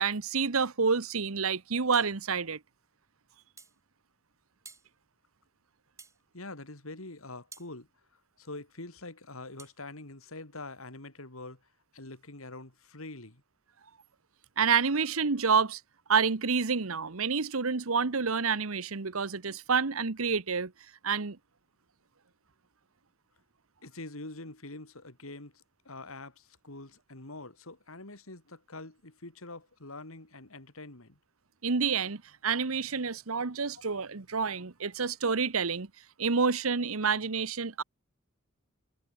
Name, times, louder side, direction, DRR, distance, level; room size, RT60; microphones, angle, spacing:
voice 1, 0.0-2.6 14.6-15.8 16.1-20.7 21.0-21.4 31.6-35.9 36.2-37.8, right 5 dB, 75° right, 1.1 m, -28 dB
sound 1, 1.9-2.2 3.6-3.8 4.6-4.9 6.0-6.2 7.5-7.7 9.6-9.8, right 4 dB, 15° right, 5.6 m, -51 dB
voice 2, 6.3-11.6 11.9-13.4 23.8-31.2, left 2 dB, 80° left, 3.5 m, -45 dB
head